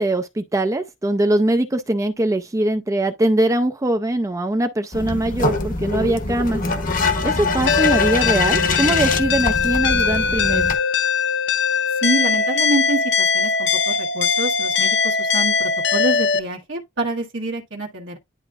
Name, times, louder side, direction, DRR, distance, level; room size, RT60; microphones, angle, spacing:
voice 1, 0.0-6.6 7.2-10.7, right 1 dB, 15° right, 0.4 m, -22 dB
sound 1, 4.9-10.8, left 3 dB, 45° left, 1.0 m, -23 dB
sound 2, 7.7-16.4, left 5 dB, 60° left, 0.6 m, -20 dB
voice 2, 12.0-18.2, right 2 dB, 75° right, 1.3 m, -26 dB
10.5 x 3.6 x 2.4 m
head